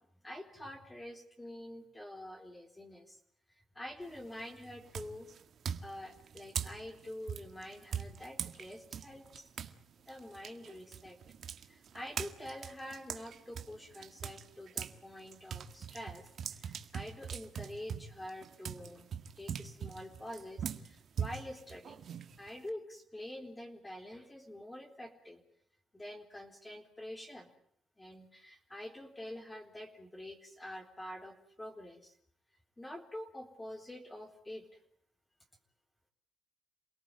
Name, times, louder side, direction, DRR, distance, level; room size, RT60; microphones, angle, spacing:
voice 1, 0.2-3.2 3.7-5.3 5.8-9.5 10.1-11.2 11.7-19.1 19.4-22.1 22.4-25.4 25.9-27.5 28.0-32.1 32.8-34.7, left 1 dB, 15° left, 2 dB, 3.9 m, -47 dB
sound 1, 4.0-4.4 4.9-9.8 10.1-15.0 15.3-22.7, right 7 dB, 60° right, 1.8 m, -41 dB
28.5 x 18.0 x 9.0 m, 0.69 s
cardioid pair, 90°, 0 cm